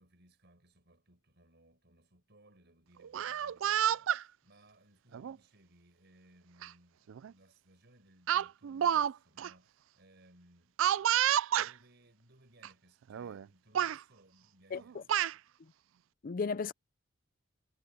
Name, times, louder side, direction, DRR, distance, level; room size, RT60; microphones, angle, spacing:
voice 1, 0.0-10.8 11.1-15.1, right 1 dB, 60° right, 5.4 m, -64 dB
Speech, 3.0-4.2 5.1-5.4 6.6-6.7 7.1-7.3 8.3-9.1 9.4-9.5 10.8-11.7 12.6-12.7 13.1-13.4 13.7-14.0 14.8-15.3, right 10 dB, 75° right, 0.3 m, -29 dB
voice 2, 14.7-15.0 15.6-15.7 16.2-16.7, left 5 dB, 45° left, 0.4 m, -35 dB
head